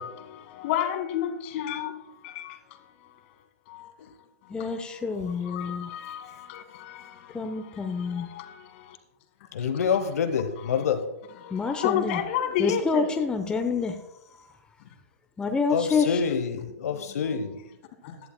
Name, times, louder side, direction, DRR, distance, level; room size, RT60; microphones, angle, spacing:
voice 1, 0.0-2.0 2.2-3.2 3.7-3.9 4.4-4.6 5.4-9.0 11.4-13.1 16.9-17.2 18.0-18.2, left 10 dB, 50° left, 1.7 m, -32 dB
voice 2, 4.5-6.0 7.3-8.3 11.5-12.2 12.6-14.1 15.4-16.2, left 4 dB, 10° left, 0.8 m, -27 dB
voice 3, 9.5-11.1 15.7-17.6, left 6 dB, 70° left, 1.0 m, -27 dB
16.5 x 11.0 x 2.2 m
hypercardioid pair, 120°, 9 cm